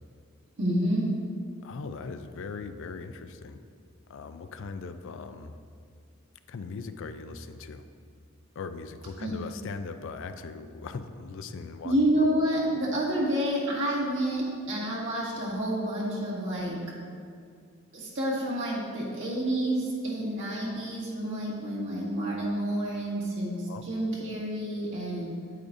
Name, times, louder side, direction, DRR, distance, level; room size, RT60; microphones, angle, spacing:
voice 1, 0.6-1.1 9.2-9.4 11.8-16.8 17.9-25.3, right 1 dB, 60° right, -6 dB, 2.0 m, -29 dB
voice 2, 1.6-3.6 4.1-5.5 6.5-7.9 8.6-11.9 23.7-23.8, left 4 dB, 60° left, 9 dB, 0.4 m, -39 dB
9.2 x 8.4 x 2.6 m, 2.2 s
head